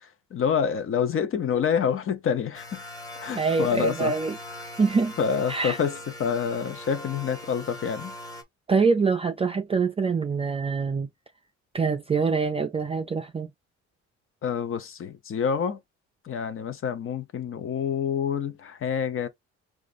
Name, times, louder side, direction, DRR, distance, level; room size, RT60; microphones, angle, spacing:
voice 1, 0.0-2.8 3.1-4.2 5.2-8.1 14.4-15.8 16.2-19.3, left 7 dB, 45° left, 0.8 m, -27 dB
sound 1, 2.5-8.4, left 1 dB, 10° left, 1.0 m, -41 dB
voice 2, 3.4-4.3 4.8-5.1 5.5-5.8 8.7-11.1 11.7-13.5, right 4 dB, 20° right, 0.4 m, -24 dB
5.0 x 2.4 x 2.5 m
cardioid pair, 105°, 29 cm